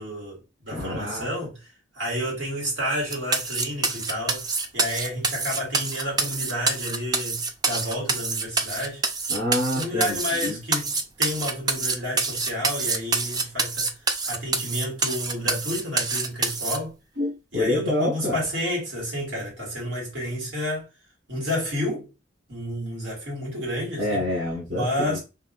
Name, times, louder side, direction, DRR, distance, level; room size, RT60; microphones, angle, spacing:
voice 1, 0.0-4.5 4.7-9.0 9.7-14.0 14.3-16.9 17.5-20.9 21.3-22.1 22.5-24.3 24.7-25.2, equal, 85° right, 2.1 m, -30 dB
voice 2, 0.7-1.3 9.3-10.6 17.2-18.4 24.0-25.2, left 1 dB, 65° right, 1.3 m, -27 dB
sound 1, 3.1-16.8, right 3 dB, 20° right, 0.4 m, -26 dB
3.6 x 2.7 x 2.5 m
head